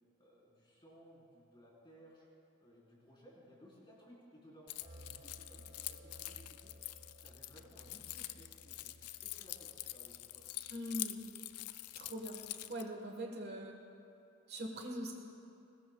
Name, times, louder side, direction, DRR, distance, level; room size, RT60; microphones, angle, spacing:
voice 1, 0.2-6.7 7.2-10.5, equal, 20° left, -5 dB, 3.9 m, -60 dB
Keys jangling, 4.7-12.8, left 15 dB, 85° left, 0.5 m, -46 dB
sound 1, 4.8-11.3, equal, 30° right, 1.0 m, -58 dB
voice 2, 10.7-11.2 11.9-12.4 12.7-13.7 14.5-15.1, equal, 45° right, 1 dB, 1.3 m, -42 dB
21.5 x 19.5 x 2.3 m, 2.6 s
head